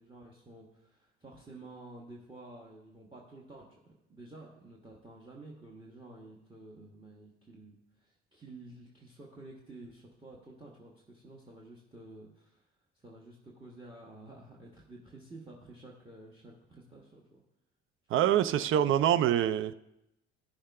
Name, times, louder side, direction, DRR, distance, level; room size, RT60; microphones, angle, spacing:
voice 1, 0.0-3.8 4.1-12.7 12.9-17.4, right 2 dB, 15° right, -1 dB, 1.5 m, -51 dB
voice 2, 18.1-19.7, right 11 dB, 35° right, 12 dB, 0.5 m, -25 dB
14.0 x 6.4 x 3.6 m, 0.86 s
figure-of-eight pair, 50°, 35 cm